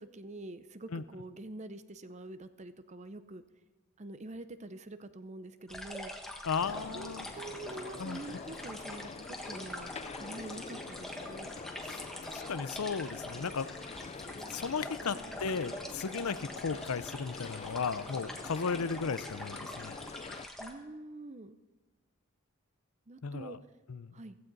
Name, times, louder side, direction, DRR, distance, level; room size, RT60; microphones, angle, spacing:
voice 1, 0.0-3.4 4.0-6.1 6.9-9.9 10.2-11.5 15.1-15.4 20.6-21.6 23.1-23.6 24.1-24.4, right 2 dB, 30° right, 11 dB, 0.6 m, -46 dB
sound 1, 5.7-20.7, left 1 dB, ahead, 1.3 m, -45 dB
voice 2, 6.4-7.3 8.0-8.2 11.8-13.7 14.5-20.0 23.2-23.6 23.9-24.2, left 5 dB, 80° left, 14 dB, 0.6 m, -35 dB
sound 2, 6.6-20.5, left 4 dB, 30° left, 0.3 m, -46 dB
15.5 x 15.0 x 4.0 m, 1.2 s
head